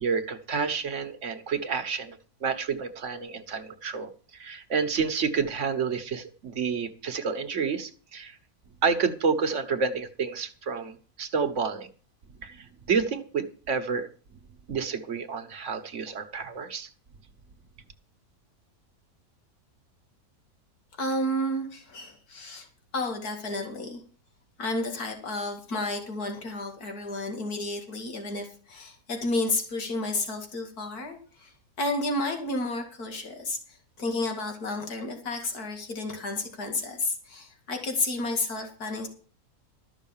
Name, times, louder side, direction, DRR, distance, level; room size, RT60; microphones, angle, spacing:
voice 1, 0.0-8.4 8.8-11.9 12.4-14.1 14.7-16.9, right 5 dB, 55° right, 10 dB, 1.4 m, -29 dB
voice 2, 21.0-22.7 22.9-24.0 24.6-39.1, left 2 dB, 85° left, 4 dB, 2.6 m, -31 dB
13.0 x 6.4 x 7.3 m, 0.41 s
omnidirectional pair, 1.6 m